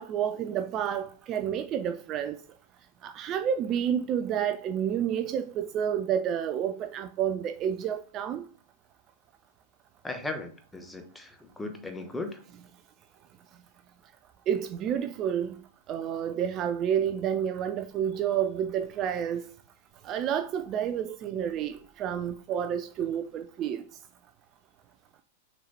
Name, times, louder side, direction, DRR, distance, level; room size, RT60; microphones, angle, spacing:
voice 1, 0.0-2.4 3.0-8.4 14.5-15.6 15.9-19.5 20.0-23.8, right 9 dB, 30° right, 0.4 m, -29 dB
voice 2, 10.0-12.4, left 2 dB, 10° left, 1.2 m, -37 dB
6.3 x 4.0 x 4.3 m
figure-of-eight pair, 95°, 0 cm